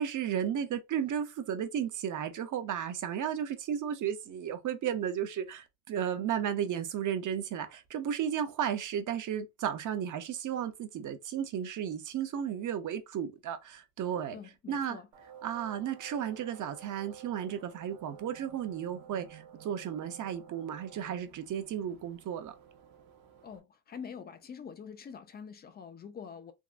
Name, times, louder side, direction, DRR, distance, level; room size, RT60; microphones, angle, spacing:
voice 1, 0.0-14.4 14.7-15.0 15.4-22.5, right 9 dB, 45° right, 0.6 m, -34 dB
voice 2, 14.3-15.1 23.4-26.5, left 7 dB, 25° left, 0.4 m, -45 dB
sound 1, 15.1-23.6, right 8 dB, 90° right, 1.0 m, -53 dB
3.5 x 2.0 x 2.5 m
cardioid pair, 130°, 45 cm